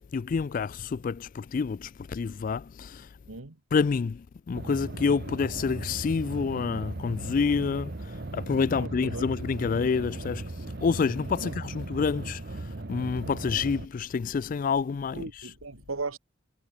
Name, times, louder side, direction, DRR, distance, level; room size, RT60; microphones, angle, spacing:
voice 1, 0.1-3.1 3.7-15.5, left 5 dB, 40° left, 0.3 m, -28 dB
sound 1, 4.5-13.9, right 2 dB, 50° right, 0.9 m, -37 dB
voice 2, 8.7-9.3 11.4-11.5 15.1-16.2, right 3 dB, 85° right, 1.5 m, -37 dB
head